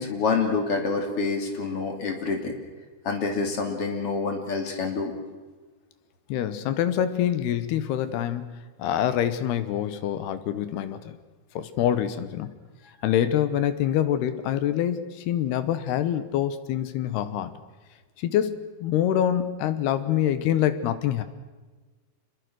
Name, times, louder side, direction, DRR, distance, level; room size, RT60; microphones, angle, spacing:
voice 1, 0.0-2.5 3.0-5.1, left 4 dB, 35° left, 4 dB, 3.3 m, -27 dB
voice 2, 6.3-11.2 11.6-12.5 13.0-17.5 18.2-21.2, left 10 dB, 75° left, 12 dB, 2.9 m, -25 dB
27.0 x 22.0 x 6.3 m, 1.3 s
omnidirectional pair, 5.1 m